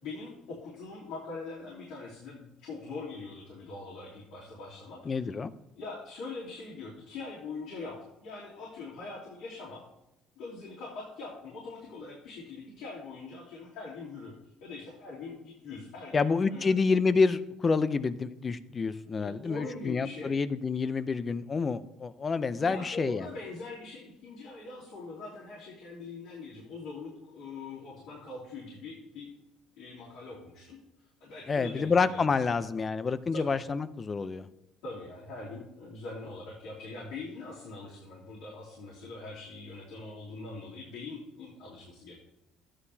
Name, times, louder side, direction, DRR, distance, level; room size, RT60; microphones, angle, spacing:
voice 1, 0.0-5.3 5.7-9.8 10.3-14.3 14.6-16.7 19.2-20.4 22.6-29.3 29.8-30.8 31.2-32.2 32.5-32.7 33.3-33.5 34.8-42.2, left 3 dB, 85° left, -8 dB, 3.2 m, -42 dB
voice 2, 5.1-5.5 16.1-23.3 31.5-34.5, left 4 dB, 30° left, 14 dB, 0.6 m, -28 dB
12.5 x 9.9 x 2.8 m, 0.86 s
cardioid pair, 100°, 0 cm